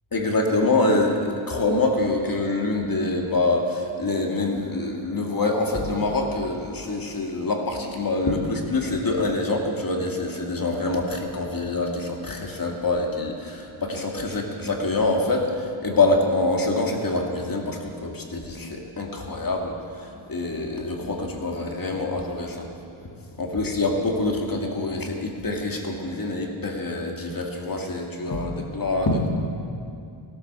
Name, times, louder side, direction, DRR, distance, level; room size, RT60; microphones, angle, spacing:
voice 1, 0.1-22.7 23.3-29.3, left 2 dB, 40° left, 1 dB, 2.2 m, -25 dB
17.5 x 12.0 x 6.8 m, 2.5 s
wide cardioid pair, 115°, 50 cm